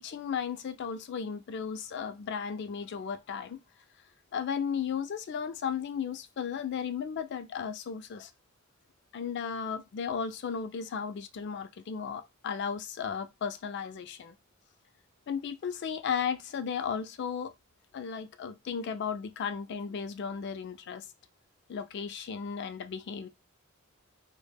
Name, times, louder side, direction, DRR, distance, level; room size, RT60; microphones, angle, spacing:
voice 1, 0.0-3.6 4.3-8.3 9.1-14.3 15.3-17.5 17.9-21.1 21.7-23.3, left 6 dB, 55° left, 0.3 m, -35 dB
2.1 x 2.0 x 3.3 m
head